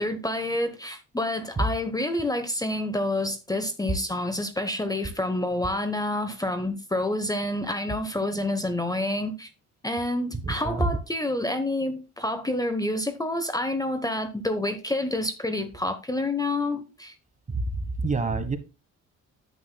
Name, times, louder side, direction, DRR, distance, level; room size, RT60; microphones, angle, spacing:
voice 1, 0.0-9.5 9.8-17.1, left 1 dB, 10° left, 1.0 m, -28 dB
voice 2, 10.4-10.9 17.5-17.6 18.0-18.6, right 3 dB, 25° right, 1.2 m, -26 dB
9.6 x 7.8 x 2.2 m
cardioid pair, 90°, 30 cm